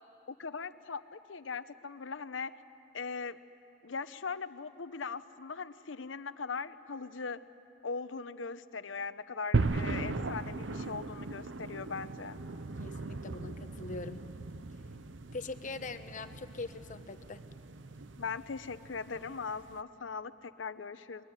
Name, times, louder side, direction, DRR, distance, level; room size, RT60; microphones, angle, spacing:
voice 1, 0.4-2.5 2.9-3.4 3.8-7.4 7.8-12.4 18.2-21.2, left 5 dB, 90° left, 13 dB, 0.8 m, -40 dB
sound 1, 9.5-19.8, right 3 dB, 75° right, 0.8 m, -38 dB
voice 2, 12.8-14.2 15.3-17.4, left 3 dB, 45° left, 10 dB, 1.0 m, -42 dB
22.5 x 22.5 x 9.8 m, 2.6 s
head